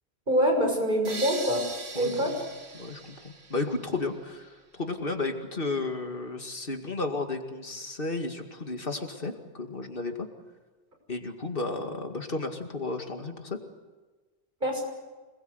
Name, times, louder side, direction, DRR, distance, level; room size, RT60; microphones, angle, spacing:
voice 1, 0.3-1.6 1.9-2.3 14.6-14.8, equal, 50° right, 2 dB, 6.3 m, -25 dB
sound 1, 1.0-4.1, right 4 dB, 75° right, 2.2 m, -40 dB
voice 2, 1.9-2.4 2.7-10.3 11.1-13.6, left 3 dB, 55° left, 5 dB, 2.4 m, -33 dB
26.0 x 21.0 x 8.0 m, 1.3 s
omnidirectional pair, 1.1 m